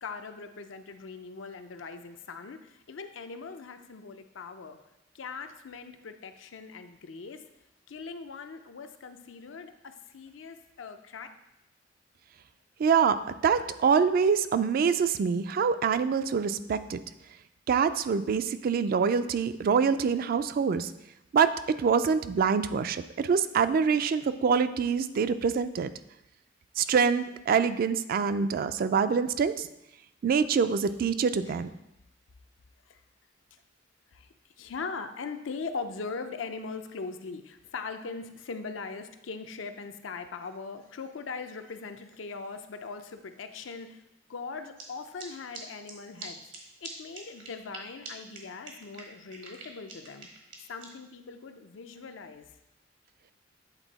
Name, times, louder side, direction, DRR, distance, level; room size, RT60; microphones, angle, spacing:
voice 1, 0.0-4.8 5.1-7.4 7.9-11.3 32.9-33.0 34.1-34.3 34.6-44.0 44.3-46.4 46.8-50.3 50.7-52.5, left 4 dB, 85° left, 8 dB, 0.5 m, -40 dB
voice 2, 12.8-17.0 17.7-20.9 21.3-25.9 26.8-29.7 30.2-31.7, right 6 dB, 50° right, 12 dB, 0.3 m, -25 dB
sound 1, 44.8-44.9 45.2-45.3 45.5-45.6 45.9-46.0 46.2-46.3 46.5-46.6 46.8-46.9 47.1-47.8 48.0-48.1 48.3-48.4 48.6-50.8, right 5 dB, 80° right, 1.4 m, -43 dB
8.2 x 3.6 x 4.0 m, 0.88 s
head